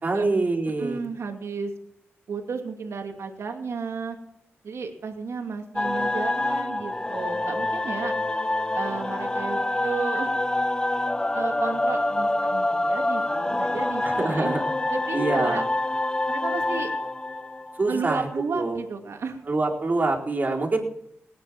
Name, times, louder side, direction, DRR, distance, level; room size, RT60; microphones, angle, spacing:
voice 1, 0.0-1.0 14.0-14.6 15.1-15.7 17.8-18.3 18.5-18.8 19.5-20.8, right 3 dB, 40° right, -1 dB, 4.2 m, -25 dB
voice 2, 0.8-1.7 2.3-4.2 4.6-8.1 8.7-10.3 11.3-14.5 14.9-15.6 16.3-16.9 17.9-19.4, right 5 dB, 75° right, 3 dB, 2.6 m, -33 dB
sound 1, 5.7-18.3, left 2 dB, 15° left, 0.7 m, -26 dB
19.0 x 10.0 x 6.1 m, 0.77 s
cardioid pair, 60°, 5 cm